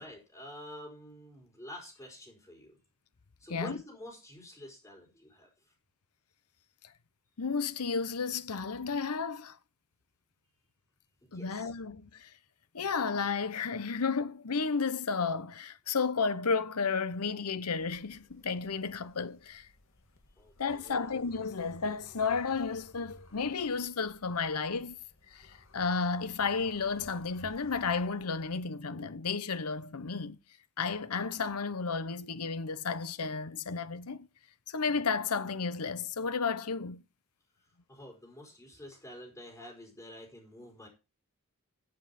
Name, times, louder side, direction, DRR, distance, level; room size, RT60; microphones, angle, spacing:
voice 1, 0.0-2.8 3.4-5.7 11.2-11.7 20.3-21.1 37.6-40.9, left 1 dB, 15° left, 5.0 m, -49 dB
voice 2, 7.4-9.6 11.3-12.3 12.7-19.7 20.6-25.0 25.3-30.4 30.8-34.3 34.7-37.0, left 5 dB, 85° left, 0.9 m, -32 dB
sound 1, 17.8-28.6, left 1 dB, 60° left, 2.0 m, -57 dB
14.5 x 7.3 x 4.3 m
head